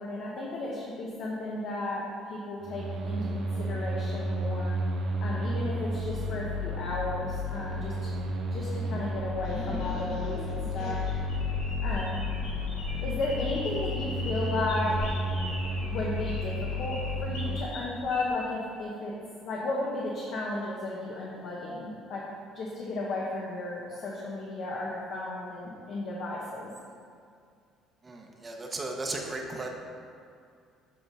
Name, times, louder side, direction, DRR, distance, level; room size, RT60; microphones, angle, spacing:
voice 1, 0.0-4.8 5.2-8.1 8.5-11.0 11.8-12.3 13.0-15.1 15.8-22.3 22.5-26.7, left 2 dB, 60° left, -4 dB, 1.0 m, -34 dB
sound 1, 2.6-17.6, left 1 dB, 55° right, 0.6 m, -32 dB
sound 2, 9.4-18.3, left 1 dB, 85° left, 1.8 m, -40 dB
voice 2, 28.0-29.7, right 2 dB, 20° right, 1 dB, 0.8 m, -35 dB
7.8 x 3.7 x 5.5 m, 2.3 s
cardioid pair, 130°, 0 cm